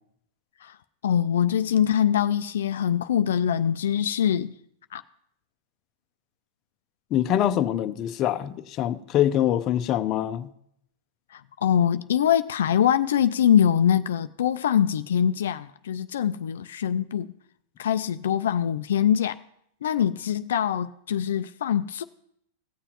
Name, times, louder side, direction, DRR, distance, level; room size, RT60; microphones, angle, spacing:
voice 1, 1.0-4.5 4.9-5.0 11.3-17.3 17.8-19.4 19.8-22.0, left 9 dB, 90° left, 0.3 m, -23 dB
voice 2, 7.1-10.5, left 11 dB, 35° left, 0.6 m, -24 dB
17.5 x 7.0 x 3.0 m
supercardioid pair, 135°, 0 cm